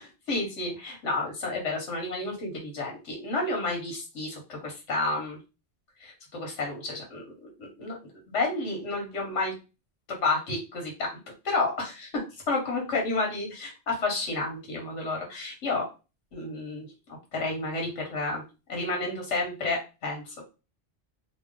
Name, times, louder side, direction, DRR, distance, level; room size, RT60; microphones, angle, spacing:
voice 1, 0.0-5.4 6.0-8.0 8.3-9.5 10.2-11.1 11.4-12.1 12.5-15.9 16.3-16.9 17.3-20.4, left 2 dB, 80° left, 0 dB, 1.4 m, -31 dB
3.0 x 2.0 x 3.7 m, 0.30 s
omnidirectional pair, 1.2 m